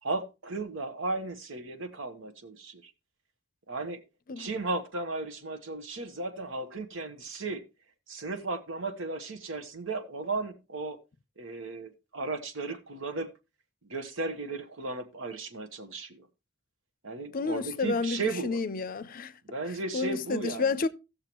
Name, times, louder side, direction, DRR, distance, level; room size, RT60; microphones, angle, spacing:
voice 1, 0.0-2.9 3.7-4.0 4.4-7.6 8.1-11.0 11.4-13.3 13.9-16.3 17.0-18.6 19.4-20.7, right 3 dB, 85° right, 1.2 m, -35 dB
voice 2, 17.3-19.4 19.9-20.9, left 4 dB, 45° left, 0.5 m, -30 dB
16.5 x 6.7 x 3.0 m
head